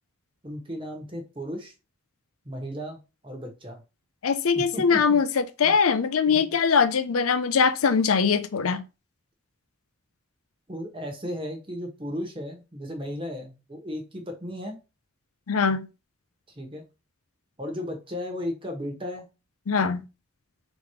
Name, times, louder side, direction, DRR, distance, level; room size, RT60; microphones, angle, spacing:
voice 1, 0.4-1.7 2.4-3.8 4.7-5.2 5.6-5.7 6.3-6.6 10.7-14.8 16.5-16.8 17.6-19.3, equal, 25° right, 1.2 m, -35 dB
voice 2, 4.2-8.8 15.5-15.9 19.7-20.0, left 5 dB, 85° left, 0.5 m, -22 dB
3.6 x 3.1 x 4.8 m
head